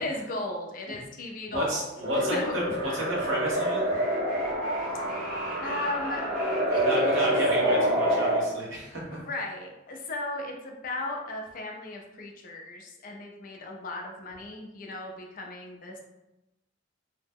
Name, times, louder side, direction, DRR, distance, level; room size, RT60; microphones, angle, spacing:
voice 1, 0.0-1.9 2.1-2.5 4.8-5.1 5.6-6.2 6.7-7.4 9.1-16.0, left 2 dB, 45° left, 1 dB, 0.4 m, -36 dB
voice 2, 1.5-2.4 2.8-4.0 6.8-9.2, right 1 dB, 80° right, -5 dB, 1.0 m, -32 dB
sound 1, 2.0-8.4, equal, 45° right, 0.9 m, -27 dB
2.8 x 2.0 x 3.5 m, 0.96 s
head